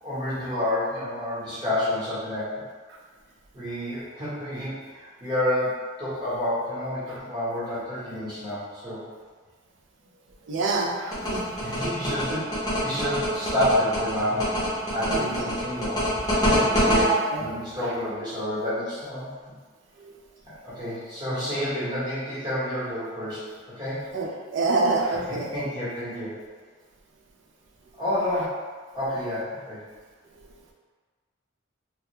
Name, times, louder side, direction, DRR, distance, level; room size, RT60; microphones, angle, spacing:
voice 1, 0.0-2.6 3.5-9.1 11.6-14.5 14.9-15.9 16.5-16.9 17.4-19.6 20.4-23.5 23.8-24.0 25.5-26.4 28.0-28.6 28.9-29.8, left 1 dB, 20° right, -12 dB, 1.0 m, -29 dB
voice 2, 10.5-11.5 15.1-15.5 16.8-17.5 20.0-20.1 24.1-25.5 30.4-30.5, right 3 dB, 65° right, -1 dB, 0.4 m, -27 dB
sound 1, 11.1-17.0, equal, 20° left, 0.6 m, -25 dB
2.3 x 2.1 x 2.9 m, 1.5 s
head